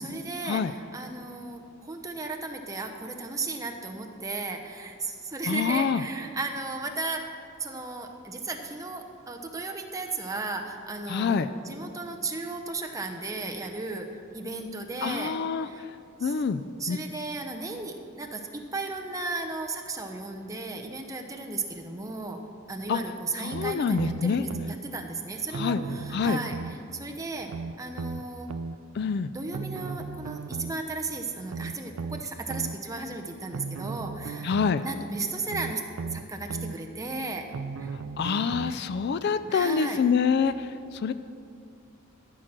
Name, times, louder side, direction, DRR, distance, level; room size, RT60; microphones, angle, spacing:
voice 1, 0.0-15.8 16.2-16.3 16.8-22.4 22.7-28.5 29.3-34.5 34.8-35.8 36.1-38.0 38.7-38.8 39.5-40.0, right 3 dB, 15° right, 3 dB, 0.8 m, -35 dB
voice 2, 5.5-6.0 11.1-11.5 15.0-15.7 16.2-16.6 16.9-17.0 22.9-23.0 23.4-24.4 25.5-25.8 26.1-26.4 28.9-29.3 34.4-34.8 38.2-41.1, left 5 dB, 50° left, 13 dB, 0.3 m, -26 dB
sound 1, 23.5-24.8 25.5-26.8 27.5-28.8 29.5-30.8 31.5-32.8 33.5-34.8 35.5-36.8 37.5-38.8 39.5-39.6, right 4 dB, 85° right, 0.4 m, -36 dB
13.5 x 6.4 x 6.0 m, 2.4 s
head